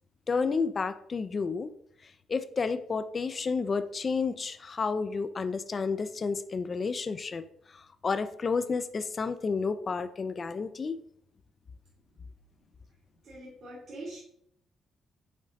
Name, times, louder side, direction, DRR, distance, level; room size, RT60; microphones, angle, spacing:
voice 1, 0.3-1.7 2.3-11.0, left 4 dB, 45° left, 12 dB, 0.3 m, -31 dB
voice 2, 13.2-14.2, right 2 dB, 65° right, -7 dB, 1.5 m, -43 dB
5.2 x 3.7 x 2.6 m, 0.68 s
supercardioid pair, 60°, 0 cm